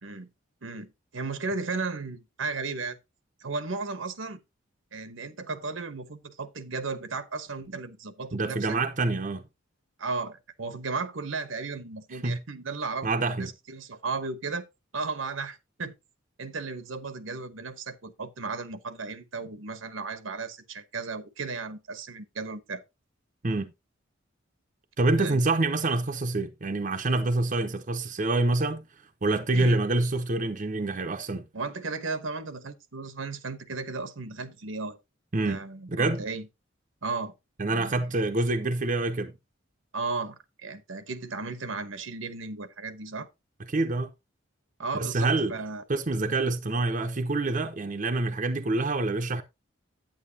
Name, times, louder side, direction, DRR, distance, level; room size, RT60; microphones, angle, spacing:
voice 1, 0.6-3.0 3.4-4.4 4.9-8.8 10.0-13.1 13.4-14.7 14.9-15.9 16.4-22.8 25.2-25.4 29.5-29.8 31.5-35.0 35.4-36.5 37.0-37.3 37.7-38.0 39.9-43.3 44.8-45.8, right 4 dB, 80° right, 1.1 m, -35 dB
voice 2, 8.3-9.4 12.1-12.4 13.0-13.5 23.4-23.7 25.0-28.9 29.2-31.5 35.3-35.6 35.9-36.2 37.6-39.3 43.7-44.1 44.9-45.6 45.9-49.4, right 2 dB, 40° right, 0.8 m, -26 dB
9.2 x 9.1 x 2.8 m
head